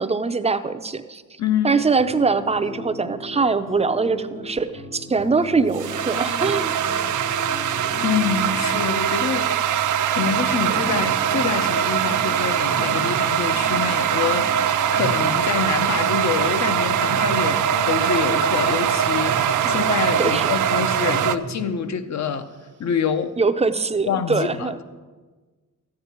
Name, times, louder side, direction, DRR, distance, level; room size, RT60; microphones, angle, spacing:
voice 1, 0.0-1.2 1.6-6.7 19.6-19.7 20.2-20.5 23.4-24.8, right 4 dB, 20° right, 0.5 m, -22 dB
voice 2, 1.4-1.8 8.0-22.5 22.8-23.4 24.1-24.8, left 7 dB, 60° left, 0.8 m, -26 dB
sound 1, 1.6-19.3, left 3 dB, 85° left, 2.1 m, -38 dB
sound 2, 5.2-21.4, right 9 dB, 70° right, 0.5 m, -22 dB
Breathing, 6.3-8.9 9.6-9.8 10.6-13.5 14.9-17.8 19.2-21.9 22.5-22.6, right 4 dB, 50° right, 0.8 m, -37 dB
14.0 x 8.7 x 4.4 m
cardioid pair, 105°, 32 cm